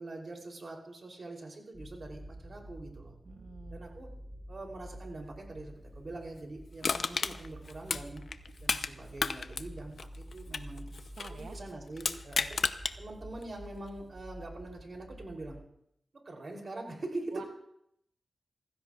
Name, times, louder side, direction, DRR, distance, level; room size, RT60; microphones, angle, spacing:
voice 1, 0.0-3.1 3.7-4.1 4.5-8.2 8.6-10.9 11.3-12.6 13.0-15.6 16.2-17.5, right 2 dB, 45° right, 1 dB, 3.2 m, -43 dB
sound 1, 1.7-15.6, right 1 dB, 5° right, 2.5 m, -49 dB
voice 2, 3.2-3.8 11.0-11.6 17.3-17.4, right 5 dB, 75° right, 5 dB, 0.7 m, -48 dB
Crushing, 6.8-8.9 9.2-11.4 12.0-13.0 13.4-13.5, left 5 dB, 60° left, 0.6 m, -32 dB
28.0 x 15.5 x 2.4 m, 0.74 s
wide cardioid pair, 170°, 0 cm